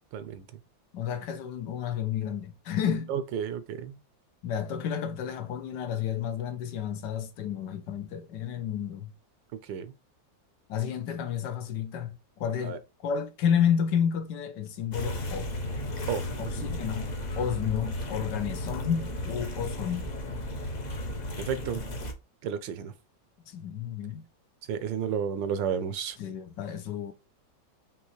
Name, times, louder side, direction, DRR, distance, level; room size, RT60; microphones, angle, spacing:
voice 1, 0.1-0.4 3.1-3.9 9.7-9.9 12.6-12.8 16.1-16.7 21.4-21.8 22.4-22.9 24.7-26.2, right 7 dB, 75° right, 1.3 m, -32 dB
voice 2, 0.9-3.2 4.4-9.1 10.7-15.5 16.4-17.1 17.4-20.1 23.5-24.2 26.2-27.1, left 8 dB, 70° left, 1.3 m, -31 dB
sound 1, 14.9-22.1, left 1 dB, 45° left, 0.5 m, -34 dB
5.4 x 2.9 x 3.0 m
omnidirectional pair, 2.1 m